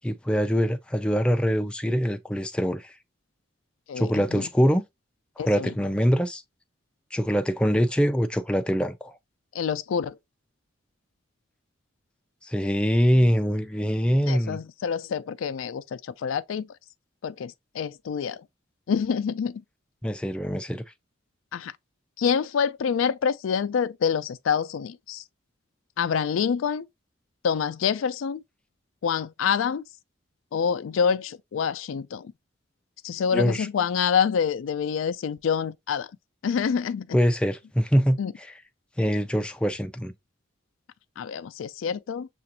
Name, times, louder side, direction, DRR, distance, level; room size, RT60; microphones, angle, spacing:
voice 1, 0.0-2.9 4.0-4.8 5.4-6.4 7.1-9.2 12.4-14.6 20.0-20.8 33.3-33.7 37.1-38.5 39.0-40.1, equal, 5° left, 0.3 m, -24 dB
voice 2, 3.9-4.5 5.4-5.7 9.6-10.2 14.3-16.7 17.2-18.4 18.9-19.6 21.5-21.7 22.2-25.2 26.0-26.9 27.4-28.4 29.0-29.8 30.5-32.3 33.0-36.1 36.4-37.1 38.2-38.3 41.2-42.3, left 7 dB, 90° left, 0.4 m, -27 dB
6.7 x 2.5 x 2.8 m
head